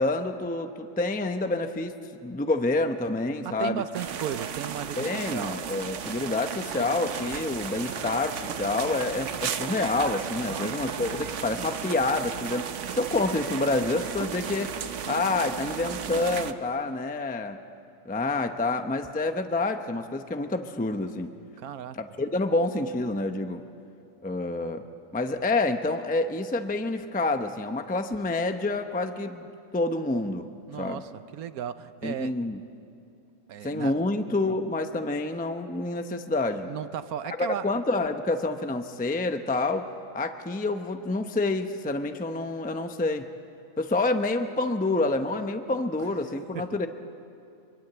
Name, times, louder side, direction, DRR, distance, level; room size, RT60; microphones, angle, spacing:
voice 1, 0.0-1.9 2.2-3.8 5.0-12.7 12.9-14.7 15.1-17.6 18.1-21.3 21.9-23.6 24.2-24.8 25.1-30.5 30.8-31.0 32.0-32.6 33.6-36.7 37.4-39.9 40.1-43.3 43.8-46.9, left 2 dB, 10° left, 7 dB, 0.6 m, -28 dB
voice 2, 3.4-5.6 10.5-11.4 21.6-22.0 30.7-32.3 33.5-33.9 36.7-37.7 46.3-46.6, right 9 dB, 80° right, 12 dB, 1.2 m, -36 dB
sound 1, 3.9-16.5, right 8 dB, 60° right, 1.1 m, -34 dB
24.0 x 23.5 x 8.0 m, 2.6 s
omnidirectional pair, 1.6 m